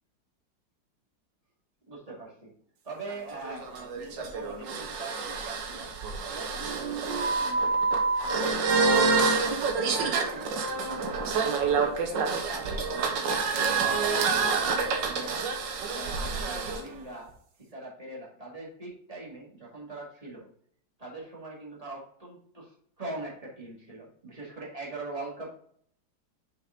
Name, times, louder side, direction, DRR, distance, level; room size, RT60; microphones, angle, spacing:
voice 1, 1.9-2.5 2.8-5.9 6.2-7.8 8.2-9.5 9.9-11.5 12.0-15.5 15.9-17.3 17.6-20.5 21.0-25.5, right 2 dB, 20° right, -3 dB, 2.0 m, -42 dB
sound 1, 3.1-16.8, right 4 dB, 75° right, 1.7 m, -27 dB
6.2 x 5.0 x 3.8 m, 0.63 s
omnidirectional pair, 2.1 m